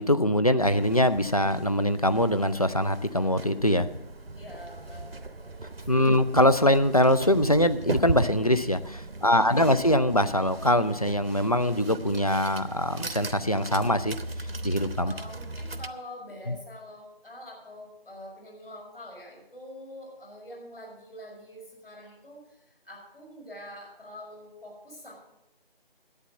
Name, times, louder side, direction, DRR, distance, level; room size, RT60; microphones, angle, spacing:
voice 1, 0.0-3.9 5.9-14.2 14.6-15.1 16.5-16.6, left 1 dB, 40° left, 11 dB, 0.5 m, -23 dB
sound 1, 0.6-15.9, right 2 dB, 75° right, 1.0 m, -38 dB
voice 2, 4.3-6.1 9.2-9.8 15.0-25.1, left 1 dB, 65° left, -1 dB, 6.1 m, -45 dB
11.5 x 8.7 x 7.4 m, 0.86 s
figure-of-eight pair, 165°, 30 cm